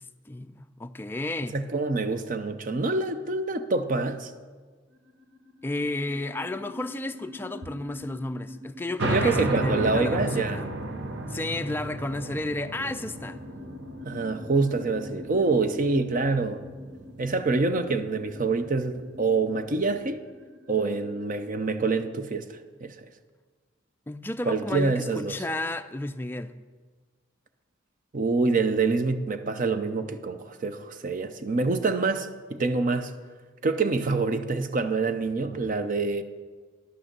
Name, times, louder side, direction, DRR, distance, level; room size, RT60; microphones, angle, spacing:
voice 1, 0.0-1.6 5.6-10.7 11.3-13.4 24.1-26.5, left 2 dB, 10° left, 0.3 m, -32 dB
voice 2, 1.5-4.3 9.0-10.6 14.1-16.6 17.2-20.2 20.7-22.4 22.8-22.9 24.5-25.4 28.1-33.1 33.6-36.2, right 3 dB, 40° right, 0.6 m, -26 dB
sound 1, 4.9-21.2, left 2 dB, 80° right, 1.2 m, -46 dB
sound 2, 9.0-20.1, right 2 dB, 60° right, 0.9 m, -34 dB
11.5 x 6.2 x 6.7 m
head